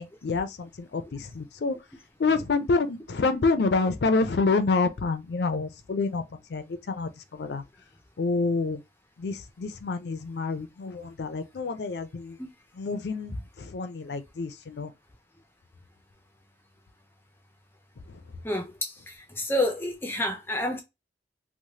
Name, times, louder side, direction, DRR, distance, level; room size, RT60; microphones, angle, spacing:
voice 1, 0.0-1.8 2.2-7.6 8.2-8.8 9.2-12.4 12.8-14.9 18.1-18.2, left 3 dB, 70° left, 0.4 m, -28 dB
voice 2, 18.4-20.8, left 1 dB, 15° left, 0.4 m, -29 dB
3.1 x 2.1 x 2.7 m
head